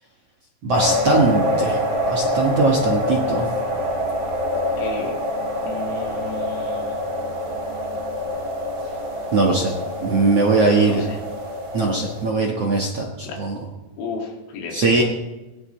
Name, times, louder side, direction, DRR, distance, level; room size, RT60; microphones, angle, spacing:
voice 1, 0.6-1.8 2.1-3.5 9.3-9.7 10.0-11.0 11.7-13.6 14.7-15.0, right 3 dB, 60° right, -1 dB, 1.7 m, -20 dB
sound 1, 0.7-12.3, left 1 dB, 30° right, 1.7 m, -25 dB
voice 2, 4.8-5.2 5.6-7.0 10.6-11.2 13.2-13.4 14.0-15.0, left 5 dB, 85° left, -1 dB, 4.6 m, -33 dB
20.0 x 17.5 x 3.2 m, 1.1 s
omnidirectional pair, 5.0 m